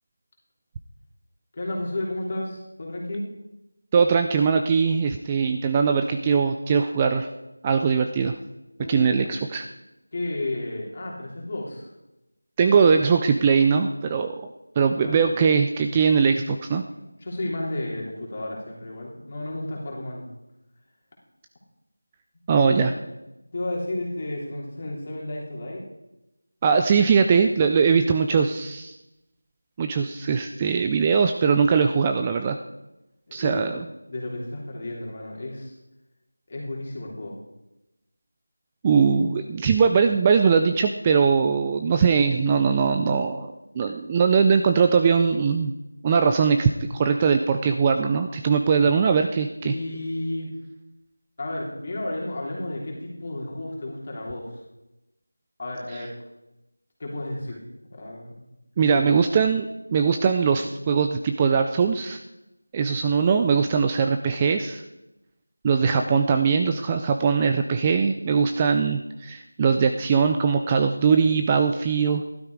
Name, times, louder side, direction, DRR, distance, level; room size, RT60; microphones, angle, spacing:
voice 1, 1.5-3.3 8.8-9.4 10.1-11.9 15.0-15.3 17.2-20.3 22.6-22.9 23.5-25.9 33.3-33.8 34.1-35.7 36.5-37.4 49.7-50.5 51.4-54.5 55.6-56.1 57.0-57.6 57.9-58.5 58.9-59.1, left 1 dB, 30° left, -2 dB, 3.2 m, -32 dB
voice 2, 3.9-7.3 7.6-8.3 8.9-9.6 12.6-14.4 14.8-16.8 22.5-22.9 26.6-28.9 29.8-32.6 33.3-33.8 38.8-43.5 43.8-45.7 46.0-49.7 58.8-62.2 62.7-64.8 65.6-72.2, right 5 dB, 15° right, 6 dB, 0.4 m, -21 dB
14.5 x 12.5 x 4.8 m, 0.94 s
figure-of-eight pair, 175°, 0 cm